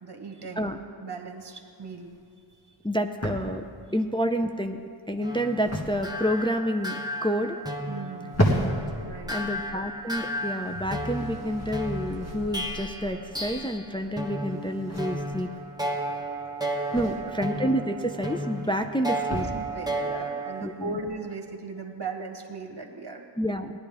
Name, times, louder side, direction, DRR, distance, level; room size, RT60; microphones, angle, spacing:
voice 1, 0.0-2.8 7.9-8.4 9.0-9.5 16.9-17.3 19.5-23.2, right 3 dB, 50° right, 4 dB, 1.4 m, -38 dB
sound 1, 1.4-21.1, equal, 30° left, 1.7 m, -36 dB
voice 2, 2.8-3.6 3.9-4.8 5.1-7.6 9.3-15.5 16.9-19.5 20.6-21.0 23.4-23.7, equal, 10° left, 5 dB, 0.4 m, -29 dB
sound 2, 5.2-13.9 14.2-20.6, right 1 dB, 10° right, 1.2 m, -33 dB
sound 3, 8.3-14.4, left 1 dB, 70° left, 1.1 m, -43 dB
17.0 x 11.0 x 3.5 m, 2.3 s
wide cardioid pair, 50°, 50 cm